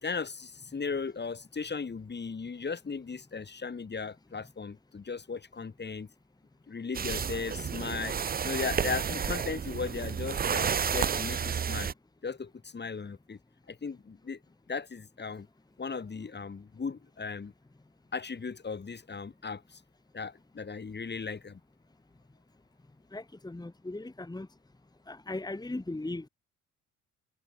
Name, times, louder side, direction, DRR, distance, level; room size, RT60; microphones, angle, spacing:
voice 1, 0.0-6.1 6.7-8.1 8.4-11.9 12.2-13.4 13.7-14.4 14.7-15.5 15.8-17.5 18.1-19.8 20.1-21.6, left 5 dB, 30° left, 3.2 m, -37 dB
sound 1, 6.9-11.9, right 7 dB, 25° right, 0.8 m, -31 dB
voice 2, 23.1-24.5 25.1-26.3, left 2 dB, 10° left, 2.1 m, -38 dB
figure-of-eight pair, 45°, 37 cm